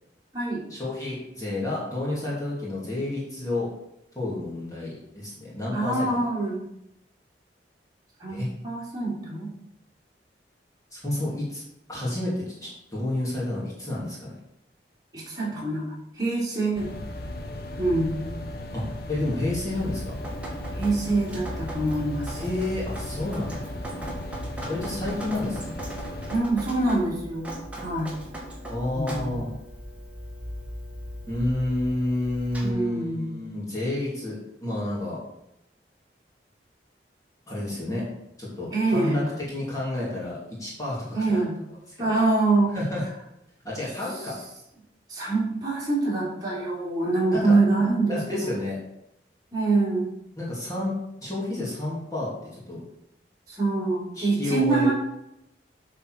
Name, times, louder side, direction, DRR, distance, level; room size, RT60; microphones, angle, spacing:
voice 1, 0.7-3.7 4.1-6.2 8.3-8.5 10.9-11.6 11.9-14.3 18.7-20.2 22.4-23.7 24.7-25.8 28.7-29.5 31.3-35.2 37.5-38.1 38.4-41.4 42.0-42.1 42.7-43.0 43.6-44.4 47.3-47.6 48.1-48.8 50.4-52.8 54.2-54.9, left 1 dB, 20° left, -6 dB, 2.4 m, -30 dB
voice 2, 5.7-6.6 8.2-9.5 15.1-15.9 16.2-16.9 17.8-18.2 20.7-22.4 26.3-27.5 27.8-28.1 28.9-29.4 32.6-33.4 38.7-39.2 41.1-41.5 42.0-42.8 45.1-48.5 49.5-50.1 53.5-54.9, right 2 dB, 25° right, -7 dB, 3.5 m, -25 dB
sound 1, 16.7-26.4, left 1 dB, 55° left, 0.9 m, -36 dB
Drip, 19.7-32.7, right 1 dB, 5° right, 1.6 m, -39 dB
8.5 x 4.3 x 6.3 m, 0.81 s
head